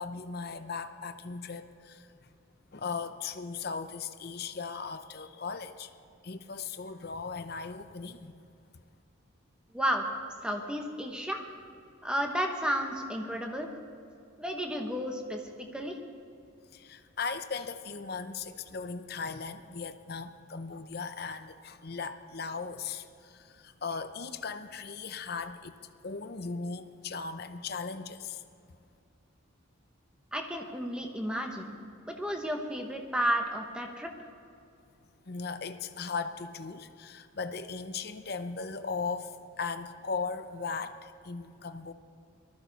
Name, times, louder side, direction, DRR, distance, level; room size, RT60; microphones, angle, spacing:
voice 1, 0.0-2.3 2.7-5.9 6.2-8.3 16.7-25.8 26.0-28.4 35.3-41.9, left 5 dB, 50° left, 10 dB, 0.6 m, -38 dB
voice 2, 9.7-10.1 10.4-11.4 12.0-13.7 14.4-16.0 30.3-31.8 32.1-34.1, equal, 5° right, 3 dB, 1.1 m, -32 dB
19.5 x 13.5 x 4.1 m, 2.5 s
head